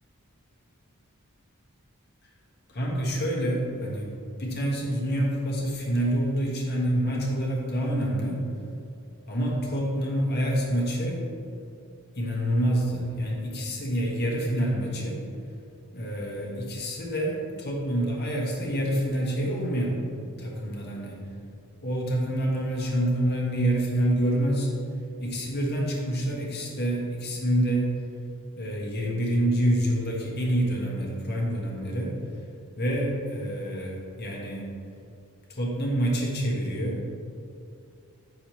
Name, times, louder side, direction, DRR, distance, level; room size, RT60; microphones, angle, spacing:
voice 1, 2.7-8.5 9.3-11.3 12.1-15.2 15.9-20.1 20.4-21.2 21.8-24.7 25.2-28.1 28.6-32.2 32.8-34.7 35.5-37.1, right 1 dB, 50° left, -3 dB, 1.4 m, -27 dB
8.5 x 6.3 x 3.1 m, 2.5 s
head